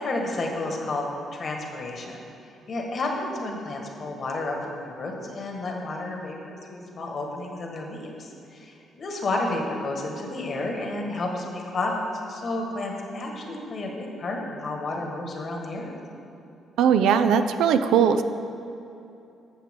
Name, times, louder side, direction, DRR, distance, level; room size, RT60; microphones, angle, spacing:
voice 1, 0.0-2.2 2.7-16.0, left 2 dB, 50° left, 1 dB, 1.5 m, -31 dB
voice 2, 16.8-18.2, right 7 dB, 85° right, 9 dB, 0.4 m, -19 dB
12.0 x 7.3 x 3.6 m, 2.7 s
cardioid pair, 90°, 0 cm